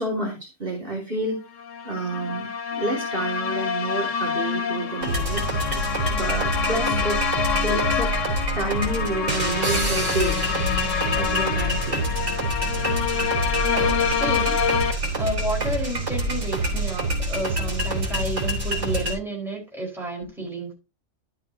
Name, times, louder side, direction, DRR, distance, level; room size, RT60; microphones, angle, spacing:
voice 1, 0.0-1.4 1.8-5.6 6.1-7.4 7.6-8.1 8.5-10.4 11.1-12.0, right 2 dB, 45° right, -2 dB, 2.9 m, -29 dB
sound 1, 1.5-14.9, left 7 dB, 80° left, 1.3 m, -27 dB
sound 2, 5.0-19.1, right 1 dB, 70° right, 4.1 m, -26 dB
voice 2, 13.6-20.7, right 1 dB, ahead, -3 dB, 4.7 m, -31 dB
12.0 x 7.4 x 2.8 m, 0.29 s
omnidirectional pair, 1.3 m